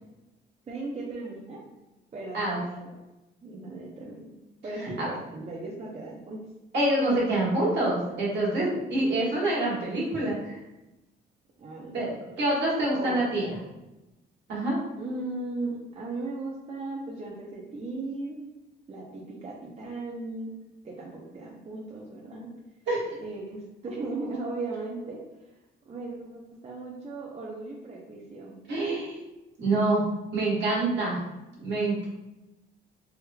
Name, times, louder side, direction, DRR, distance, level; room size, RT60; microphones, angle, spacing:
voice 1, 0.7-1.6 2.1-2.9 3.4-4.3 4.6-6.4 11.6-12.1 12.9-13.4 15.0-18.4 18.9-20.5 20.8-22.5 23.2-25.2 25.9-28.6, right 2 dB, 35° right, -3 dB, 0.6 m, -37 dB
voice 2, 6.7-10.6 11.9-13.5 14.5-14.8 22.9-23.1 28.7-29.2 29.6-30.0 30.3-31.2 31.6-32.1, right 2 dB, 65° right, -5 dB, 1.4 m, -26 dB
3.4 x 3.1 x 2.2 m, 1.0 s
cardioid pair, 90°, 20 cm